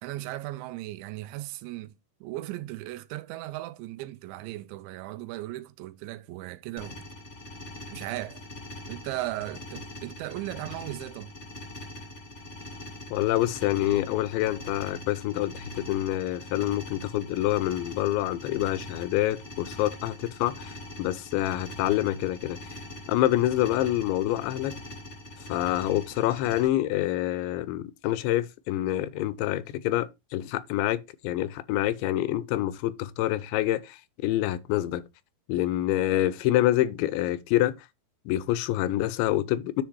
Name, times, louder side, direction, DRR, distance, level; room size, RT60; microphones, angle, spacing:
voice 1, 0.0-7.1 7.9-8.4 8.9-11.3, right 16 dB, 90° right, 2.9 m, -37 dB
sound 1, 6.8-26.7, left 1 dB, 55° left, 0.8 m, -43 dB
voice 2, 13.1-22.6 23.1-24.7 25.5-35.0 35.5-37.7 38.3-39.8, left 14 dB, 85° left, 2.9 m, -27 dB
10.0 x 3.5 x 4.6 m
omnidirectional pair, 5.1 m